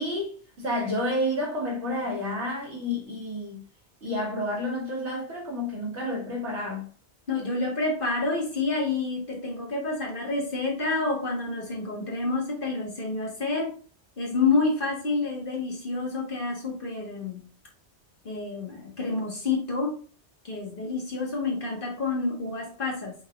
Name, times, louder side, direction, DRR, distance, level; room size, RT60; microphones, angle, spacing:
voice 1, 0.0-3.6 4.0-6.9, left 1 dB, 85° right, 2.2 m, -30 dB
voice 2, 7.3-13.7 14.2-17.4 18.3-20.0 20.4-23.1, left 3 dB, 50° left, 1.8 m, -28 dB
5.4 x 3.9 x 2.5 m
omnidirectional pair, 1.1 m